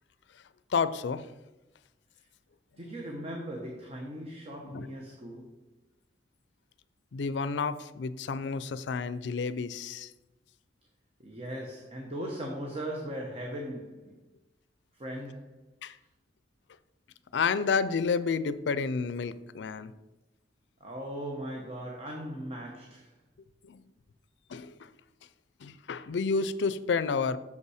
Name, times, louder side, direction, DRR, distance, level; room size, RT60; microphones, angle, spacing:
voice 1, 0.7-1.3 4.6-4.9 7.1-10.1 15.8-16.0 17.3-19.9 23.6-23.8 24.5-24.9 25.6-27.4, left 5 dB, 70° left, 14 dB, 0.4 m, -30 dB
voice 2, 2.8-5.6 11.2-14.2 14.9-15.6 20.8-23.1, equal, 35° right, 0 dB, 0.9 m, -39 dB
6.7 x 5.5 x 4.8 m, 1.0 s
head